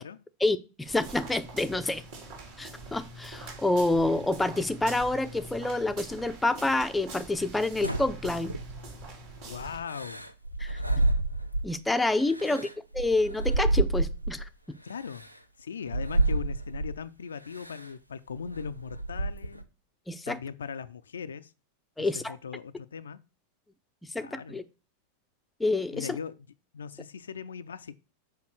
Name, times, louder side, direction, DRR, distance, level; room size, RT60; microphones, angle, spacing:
voice 1, 0.4-2.0 2.6-8.5 10.6-10.8 11.6-12.7 12.9-14.4 20.1-20.4 22.0-22.3 24.1-24.6 25.6-26.1, left 2 dB, 5° left, 0.6 m, -28 dB
sound 1, 0.8-9.8, right 2 dB, 55° right, 3.7 m, -44 dB
sound 2, 7.8-9.0 9.9-11.8 12.2-14.5 15.1-15.3 15.9-17.0 17.6-17.9 18.3-19.6, right 2 dB, 90° right, 0.6 m, -29 dB
voice 2, 9.4-10.2 12.4-12.6 14.8-15.3 15.6-19.7 20.3-21.5 22.0-23.2 24.2-24.6 25.9-26.3 26.7-28.0, left 6 dB, 70° left, 0.4 m, -39 dB
6.6 x 5.3 x 6.1 m
figure-of-eight pair, 90°, 0 cm